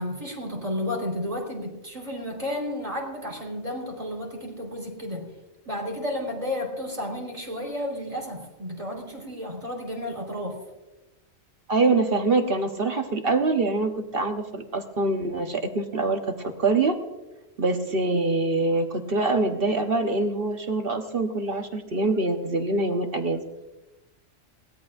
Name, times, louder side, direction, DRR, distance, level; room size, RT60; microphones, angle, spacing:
voice 1, 0.0-5.3 5.6-10.6, left 1 dB, 30° right, 0 dB, 4.4 m, -32 dB
voice 2, 11.7-17.0 17.6-23.4, right 3 dB, 55° right, 5 dB, 1.2 m, -24 dB
23.0 x 18.5 x 2.6 m, 1.0 s
omnidirectional pair, 1.2 m